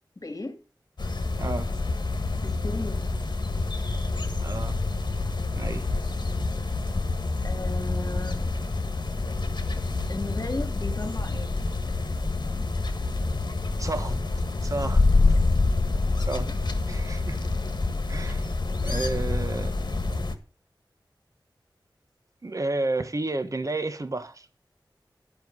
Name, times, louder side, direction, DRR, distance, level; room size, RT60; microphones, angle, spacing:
voice 1, 0.2-0.6 2.4-3.1 5.5-5.8 7.4-8.5 10.1-11.6 18.7-18.8, left 2 dB, 40° left, 2.6 m, -35 dB
sound 1, 1.0-20.3, left 3 dB, 60° left, 1.6 m, -27 dB
voice 2, 4.4-4.7 5.6-5.9 13.8-14.3 14.6-15.4 16.3-16.5 16.9-17.4 18.1-18.5 18.8-19.7 22.4-24.5, right 2 dB, 40° right, 1.1 m, -31 dB
10.5 x 5.7 x 7.5 m
wide cardioid pair, 65°, 8 cm